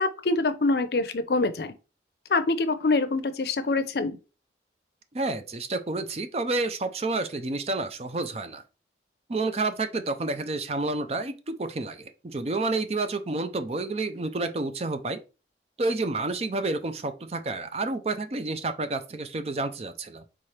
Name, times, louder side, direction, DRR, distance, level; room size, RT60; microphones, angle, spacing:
voice 1, 0.0-1.7 2.3-4.2, left 3 dB, 60° left, 0.5 m, -25 dB
voice 2, 5.1-8.6 9.3-15.2 15.8-20.2, right 2 dB, 35° right, 0.5 m, -29 dB
4.3 x 3.7 x 3.2 m
head